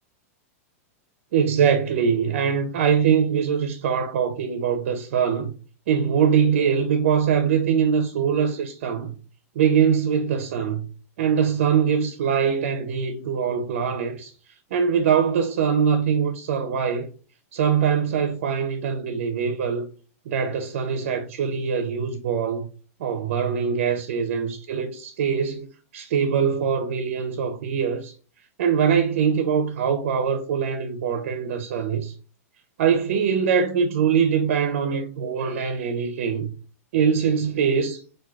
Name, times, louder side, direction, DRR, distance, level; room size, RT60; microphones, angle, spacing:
voice 1, 1.3-5.5 5.9-9.2 9.6-10.8 11.2-14.3 14.7-17.1 17.5-19.9 20.3-22.7 23.0-25.7 25.9-28.1 28.6-32.1 32.8-36.5 36.9-38.0, right 7 dB, 55° right, 0.4 m, -23 dB
4.5 x 2.2 x 2.3 m
supercardioid pair, 175°, 8 cm